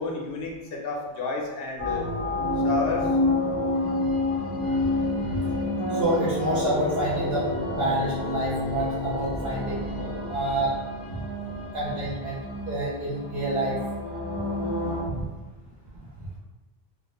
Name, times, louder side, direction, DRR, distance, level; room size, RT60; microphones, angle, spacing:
voice 1, 0.0-2.0 2.6-3.2, left 2 dB, 70° left, 0 dB, 0.7 m, -31 dB
sound 1, 1.8-15.0, left 2 dB, 35° left, 0.6 m, -28 dB
voice 2, 5.9-7.5 7.8-9.8 10.3-10.7 11.1-11.2 11.7-12.4 12.7-13.8 15.0-15.3, right 1 dB, 70° right, -7 dB, 0.8 m, -28 dB
2.2 x 2.0 x 2.9 m, 1.1 s
omnidirectional pair, 1.1 m